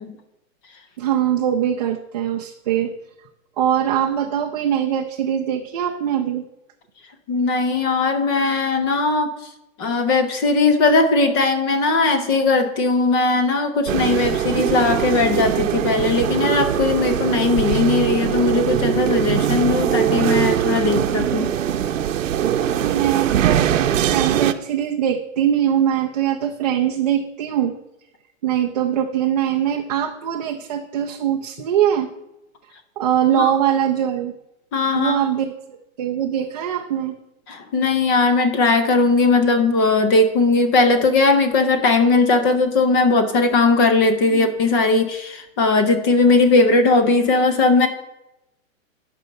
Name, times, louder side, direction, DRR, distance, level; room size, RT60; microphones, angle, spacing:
voice 1, 1.0-2.9 3.6-6.4 22.8-27.8 28.4-32.1 33.0-34.3 34.9-37.2 44.3-44.5, right 10 dB, 30° right, 3 dB, 0.4 m, -22 dB
voice 2, 7.3-9.3 9.8-21.5 33.3-33.5 34.7-35.2 37.5-47.9, left 3 dB, 15° left, 8 dB, 0.6 m, -18 dB
sound 1, 13.9-24.5, right 10 dB, 65° right, 0.8 m, -21 dB
11.0 x 5.4 x 6.5 m, 0.88 s
hypercardioid pair, 160°, 41 cm